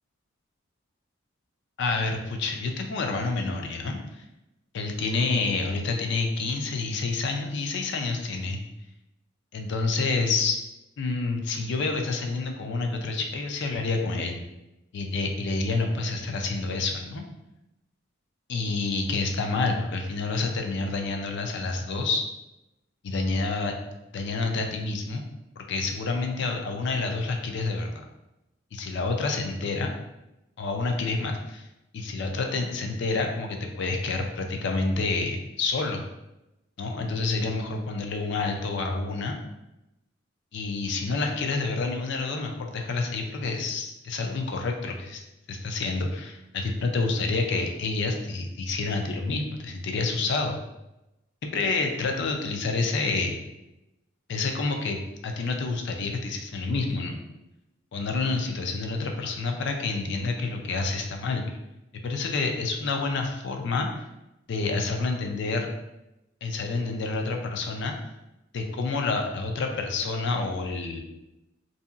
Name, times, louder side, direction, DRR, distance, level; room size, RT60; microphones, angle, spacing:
voice 1, 1.8-4.2 4.7-8.6 9.5-10.6 11.0-14.4 14.9-17.2 18.5-22.2 23.0-25.2 25.6-28.0 28.7-29.9 30.6-31.6 31.9-36.0 36.8-39.4 40.5-45.2 45.5-50.6 51.4-53.4 54.3-55.0 55.2-57.2 57.9-61.4 62.0-64.1 64.5-65.7 66.4-67.9 68.5-71.0, left 3 dB, 60° left, 3 dB, 0.4 m, -28 dB
2.8 x 2.7 x 2.4 m, 0.92 s
head